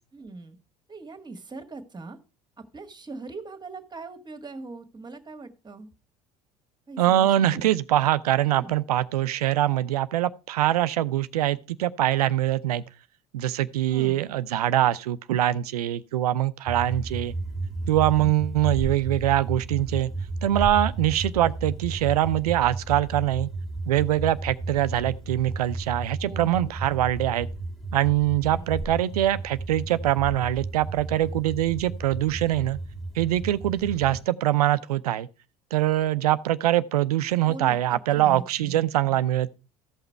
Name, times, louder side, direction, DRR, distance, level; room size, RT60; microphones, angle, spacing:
voice 1, 0.1-0.6 0.9-2.2 2.6-5.9 6.9-7.7 8.4-8.7 13.9-14.2 26.2-26.8 28.5-28.8 33.7-34.0 37.5-38.8, right 3 dB, 20° right, 1.7 m, -41 dB
voice 2, 7.0-12.8 13.3-17.3 17.9-20.1 20.4-23.5 23.9-27.5 27.9-32.8 33.1-35.3 35.7-39.5, right 13 dB, 80° right, 0.5 m, -23 dB
sound 1, 16.7-34.2, right 2 dB, ahead, 2.0 m, -33 dB
14.5 x 5.8 x 4.5 m
hypercardioid pair, 65°, 19 cm